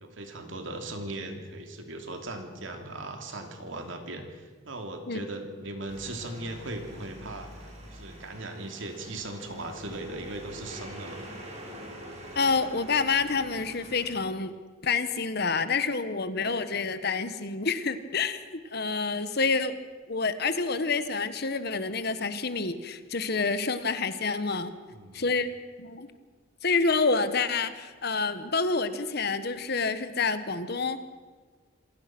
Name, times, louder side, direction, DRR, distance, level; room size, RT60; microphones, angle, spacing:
voice 1, 0.0-11.2 24.9-25.2, right 2 dB, 70° right, 5 dB, 2.9 m, -38 dB
sound 1, 5.9-14.1, equal, 35° right, 5.2 m, -45 dB
voice 2, 12.3-14.5 14.8-18.4 18.7-19.7 20.1-24.7 25.1-25.5 25.8-26.1 26.6-31.2, left 4 dB, 55° left, 11 dB, 1.3 m, -28 dB
26.5 x 17.5 x 6.1 m, 1.5 s
head